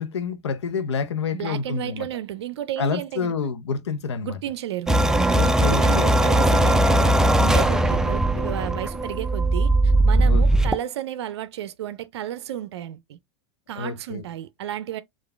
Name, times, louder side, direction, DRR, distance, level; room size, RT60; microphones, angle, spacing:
voice 1, 0.0-2.1 2.8-4.4 5.3-6.2 10.3-10.7 13.8-14.2, left 5 dB, 80° left, 0.9 m, -28 dB
voice 2, 1.3-3.3 4.2-5.2 5.4-13.2 13.7-15.0, right 11 dB, 75° right, 0.5 m, -32 dB
sound 1, 4.9-10.8, right 1 dB, 5° right, 0.4 m, -19 dB
4.8 x 2.5 x 3.3 m
hypercardioid pair, 100°, 14 cm